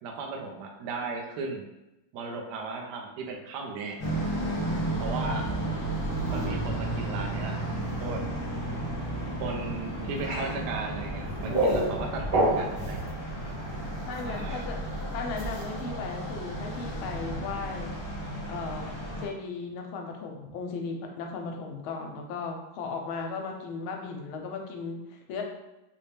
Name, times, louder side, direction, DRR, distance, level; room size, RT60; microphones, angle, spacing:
voice 1, 0.0-1.6 2.1-4.1 5.0-5.5 6.2-7.6 8.0-8.2 9.4-13.0 14.2-14.6, right 4 dB, 70° right, 1 dB, 1.0 m, -36 dB
sound 1, 4.0-19.3, right 1 dB, 40° left, 0.8 m, -33 dB
sound 2, 4.0-4.8 5.9-7.4 7.7-8.4 8.8-8.9 9.1-9.2 9.6-9.7 10.0-10.7 11.1-12.0 12.3-15.0 15.4-16.1 16.6-17.3, right 1 dB, 35° right, 1.0 m, -42 dB
sound 3, 11.0-13.0, right 1 dB, 85° right, 0.5 m, -26 dB
voice 2, 14.1-14.8 15.1-17.9 18.5-18.9 19.2-25.4, left 4 dB, 85° left, 2 dB, 1.4 m, -36 dB
4.1 x 2.1 x 3.3 m, 0.95 s
omnidirectional pair, 2.3 m